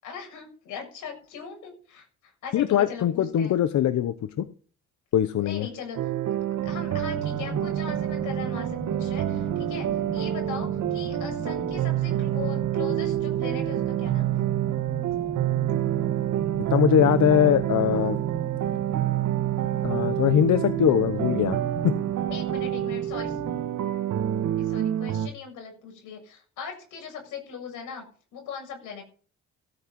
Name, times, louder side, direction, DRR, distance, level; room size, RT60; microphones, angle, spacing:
voice 1, 0.0-3.5 5.4-6.1 6.6-14.4 22.3-23.4 24.6-29.0, left 6 dB, 85° left, 3 dB, 7.4 m, -39 dB
voice 2, 2.5-4.5 5.1-5.7 16.7-18.2 19.8-21.6 21.8-21.9, left 10 dB, 65° left, 12 dB, 1.1 m, -22 dB
sound 1, 6.0-25.3, right 13 dB, 75° right, 1.7 m, -27 dB
sound 2, 6.6-23.7, right 4 dB, 15° right, 4.8 m, -36 dB
16.5 x 9.6 x 5.4 m, 0.41 s
cardioid pair, 90°, 30 cm